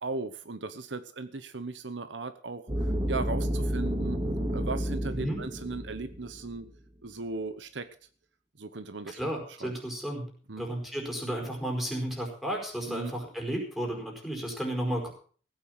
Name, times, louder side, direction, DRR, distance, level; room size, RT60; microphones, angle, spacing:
voice 1, 0.0-4.2 4.5-6.7 7.0-7.9 8.6-9.7 10.5-10.7 12.9-13.1, right 3 dB, 75° right, 12 dB, 1.0 m, -37 dB
sound 1, 2.7-6.6, equal, 25° right, 3.2 m, -31 dB
voice 2, 9.1-10.3 10.6-15.1, right 1 dB, ahead, 1 dB, 4.7 m, -33 dB
16.0 x 9.1 x 6.4 m, 0.43 s
head